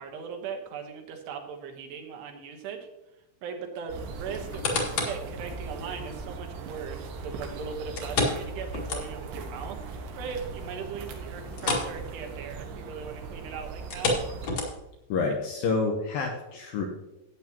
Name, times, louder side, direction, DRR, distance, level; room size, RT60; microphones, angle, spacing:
voice 1, 0.0-2.9 3.4-9.8 10.1-14.2, right 6 dB, 70° right, 4 dB, 3.0 m, -39 dB
sound 1, 3.9-14.5, right 3 dB, 90° right, 3.8 m, -39 dB
sound 2, 4.3-5.3 5.8-5.9 8.0-9.4 9.8-9.9 10.3-10.4 11.5-12.0 12.2-12.5 13.8-15.0 15.6-15.7, left 3 dB, 50° left, 3.0 m, -29 dB
voice 2, 15.1-16.9, left 4 dB, 75° left, 2 dB, 2.1 m, -28 dB
14.5 x 9.2 x 2.9 m, 0.96 s
omnidirectional pair, 5.4 m